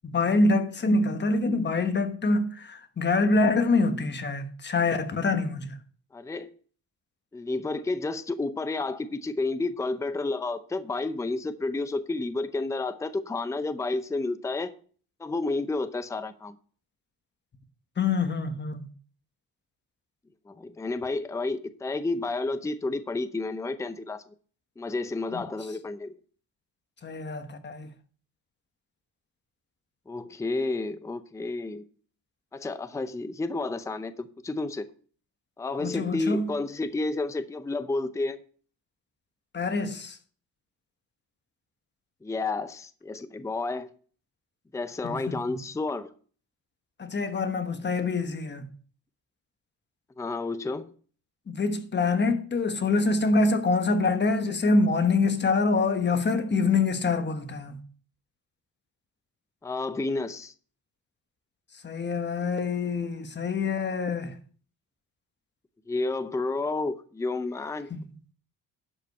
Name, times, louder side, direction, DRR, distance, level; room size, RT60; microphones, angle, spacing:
voice 1, 0.0-5.7 18.0-18.9 25.3-25.4 27.0-27.9 35.8-36.5 39.5-40.2 45.0-45.6 47.0-48.6 51.5-57.8 61.8-64.4 67.9-68.0, left 3 dB, 30° left, 1.2 m, -25 dB
voice 2, 6.1-6.5 7.3-14.7 15.2-16.6 20.5-24.2 24.8-26.2 30.1-31.8 32.5-34.9 35.6-38.4 42.2-43.9 44.7-46.1 50.2-50.9 59.6-60.5 65.9-67.9, left 3 dB, 10° left, 0.6 m, -31 dB
11.5 x 5.3 x 5.3 m
cardioid pair, 110°, 34 cm